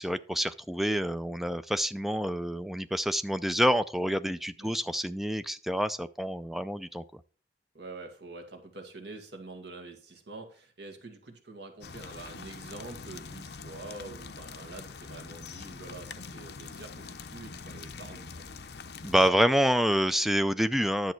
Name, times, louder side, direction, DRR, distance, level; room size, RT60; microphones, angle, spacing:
voice 1, 0.0-7.0 19.0-21.1, equal, ahead, 11 dB, 0.4 m, -27 dB
voice 2, 7.7-18.5, right 3 dB, 75° right, 4 dB, 2.1 m, -46 dB
sound 1, 11.8-19.3, left 5 dB, 65° left, 0.7 m, -44 dB
10.5 x 7.1 x 4.6 m, 0.39 s
head